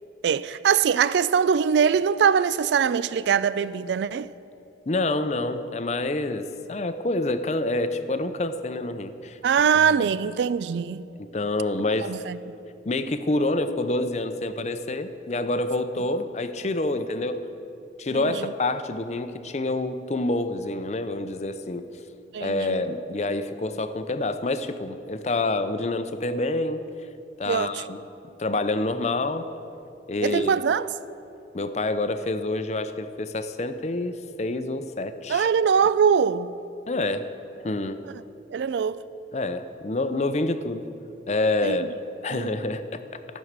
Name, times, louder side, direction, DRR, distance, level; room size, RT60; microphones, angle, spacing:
voice 1, 0.2-4.3 9.4-11.1 12.0-12.4 18.1-18.5 22.3-22.8 27.5-27.8 30.2-30.9 35.3-36.5 38.0-38.1 38.5-39.0 41.6-41.8 42.3-42.6, right 7 dB, 75° right, 0.3 m, -22 dB
voice 2, 4.9-9.4 10.0-10.1 11.2-12.1 12.8-17.4 18.0-21.8 22.4-26.8 27.4-28.0 28.4-29.5 30.1-30.6 31.5-35.5 36.9-37.3 37.6-38.0 39.3-40.8 41.3-41.9 42.2-43.0, left 2 dB, 40° left, 0.5 m, -27 dB
14.0 x 6.3 x 8.0 m
head